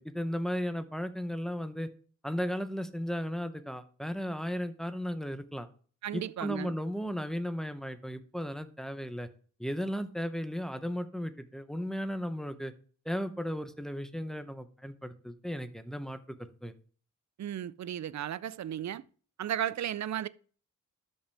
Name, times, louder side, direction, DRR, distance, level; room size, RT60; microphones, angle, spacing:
voice 1, 0.0-1.9 2.2-5.7 6.1-9.3 9.6-12.7 13.1-16.7, equal, ahead, 0.7 m, -35 dB
voice 2, 6.0-6.7 17.4-19.0 19.4-20.3, right 10 dB, 65° right, 0.4 m, -34 dB
12.5 x 5.4 x 3.4 m
wide cardioid pair, 130°, 30 cm